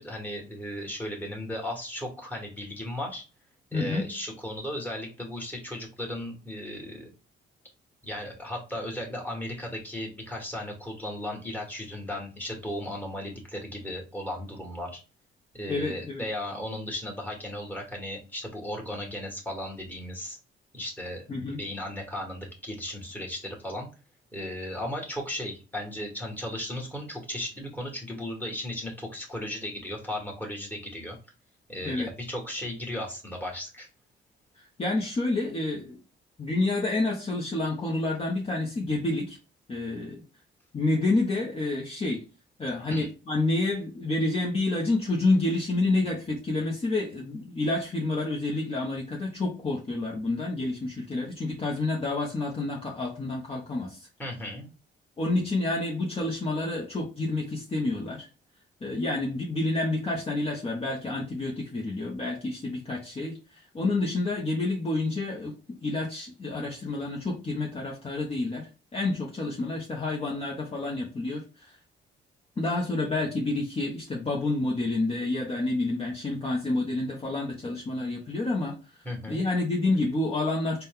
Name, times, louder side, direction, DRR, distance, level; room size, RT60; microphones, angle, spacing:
voice 1, 0.0-3.2 3.7-7.1 8.0-15.0 15.5-20.4 20.7-23.9 24.3-31.2 31.7-33.9 42.9-43.1 54.2-54.7 79.0-79.5, left 1 dB, 10° left, 0 dB, 1.6 m, -36 dB
voice 2, 3.7-4.1 15.7-16.2 21.3-21.6 31.8-32.1 34.6-36.0 36.4-39.4 39.7-40.2 40.7-42.2 42.6-54.1 55.2-58.3 58.8-65.5 65.8-71.8 72.6-80.8, left 2 dB, 30° left, -2 dB, 0.9 m, -29 dB
4.0 x 2.2 x 3.6 m, 0.33 s
cardioid pair, 90°, 20 cm